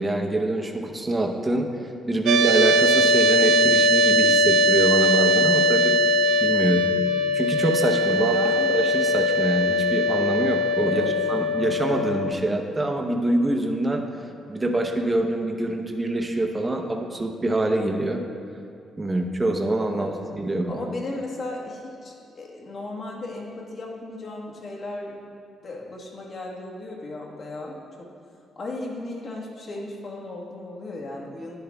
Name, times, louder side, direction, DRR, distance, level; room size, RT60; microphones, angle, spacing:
voice 1, 0.0-1.7 2.1-5.9 6.4-6.9 7.3-8.4 8.7-14.0 14.5-18.2 19.0-20.8, right 1 dB, 20° right, 3 dB, 0.8 m, -25 dB
sound 1, 2.3-12.3, left 1 dB, 85° right, 0.3 m, -20 dB
voice 2, 8.1-8.7 10.8-11.1 19.9-20.1 20.7-25.1 25.6-28.1 28.5-31.6, left 2 dB, 50° left, -2 dB, 1.5 m, -35 dB
10.5 x 10.0 x 2.3 m, 2.4 s
cardioid pair, 95°, 0 cm